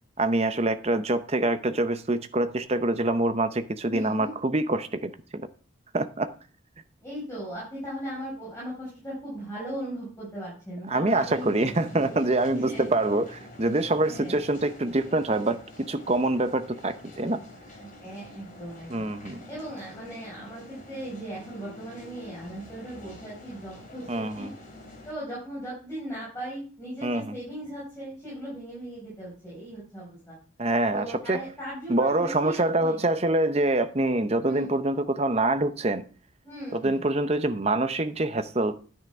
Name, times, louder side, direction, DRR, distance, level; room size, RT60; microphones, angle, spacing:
voice 1, 0.2-5.4 5.9-6.3 10.9-17.4 18.9-19.4 24.1-24.5 27.0-27.4 30.6-31.4 31.9-36.0 36.7-38.7, right 2 dB, 30° right, 10 dB, 0.7 m, -25 dB
voice 2, 3.9-4.3 7.0-11.8 12.5-13.2 14.1-14.4 17.8-19.1 19.5-24.5 25.1-30.4 30.9-33.0 34.4-34.7 36.4-37.0, right 1 dB, 15° left, -7 dB, 5.3 m, -38 dB
sound 1, 11.1-25.1, left 2 dB, 40° left, 2.8 m, -47 dB
10.5 x 9.4 x 3.5 m, 0.38 s
head